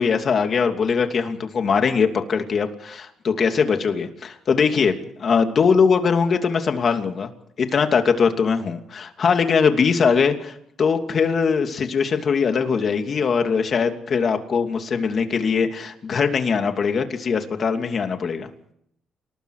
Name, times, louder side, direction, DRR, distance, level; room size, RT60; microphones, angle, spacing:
voice 1, 0.0-4.9 5.2-7.3 7.6-18.5, left 5 dB, 50° left, 6 dB, 2.7 m, -21 dB
29.0 x 20.0 x 5.0 m, 0.72 s
cardioid pair, 90°, 0 cm